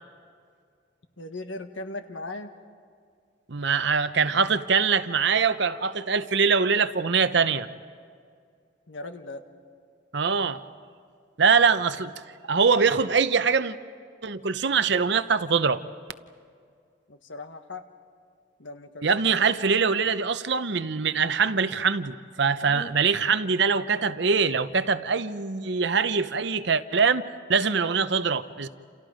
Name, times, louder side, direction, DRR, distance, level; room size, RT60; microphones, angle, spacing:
voice 1, 1.2-2.6 8.9-9.5 17.1-17.8 18.6-19.1 22.6-23.0, left 2 dB, 75° left, 7 dB, 1.6 m, -38 dB
voice 2, 3.5-7.7 10.1-10.6 11.4-12.1 12.5-13.8 14.2-15.8 19.0-27.2 27.5-28.7, right 5 dB, 60° right, 12 dB, 0.8 m, -23 dB
29.0 x 29.0 x 5.1 m, 2.2 s
head